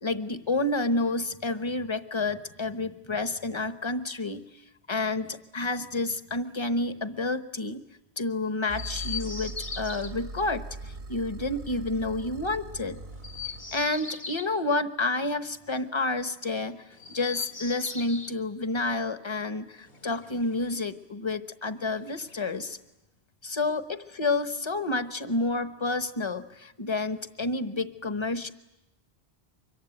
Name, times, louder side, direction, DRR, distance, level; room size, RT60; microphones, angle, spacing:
voice 1, 0.0-4.4 4.9-7.8 8.2-13.0 13.7-16.8 17.1-22.8 23.4-28.5, left 2 dB, 30° left, 11 dB, 1.1 m, -29 dB
Chirp tweet, 8.7-10.1 13.1-14.5 16.9-18.4 19.8-20.9 21.9-22.9, left 5 dB, 65° left, 2.0 m, -39 dB
sound 1, 8.7-13.9, right 3 dB, 65° right, 1.8 m, -41 dB
24.5 x 22.5 x 9.2 m, 0.91 s
omnidirectional pair, 1.0 m